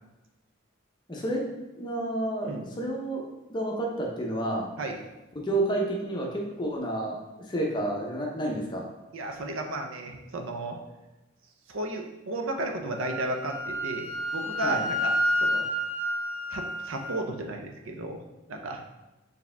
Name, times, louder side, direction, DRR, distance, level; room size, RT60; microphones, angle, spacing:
voice 1, 1.1-1.4 1.7-4.7 5.4-7.2 7.5-8.8 14.6-14.8, right 1 dB, 20° left, -1 dB, 0.7 m, -30 dB
voice 2, 9.1-10.8 11.7-15.7 16.5-18.2 18.5-18.8, right 1 dB, 75° right, 3 dB, 0.6 m, -34 dB
Wind instrument woodwind instrument, 12.9-17.1, equal, 30° right, 1.1 m, -29 dB
4.7 x 2.8 x 3.3 m, 1.0 s
head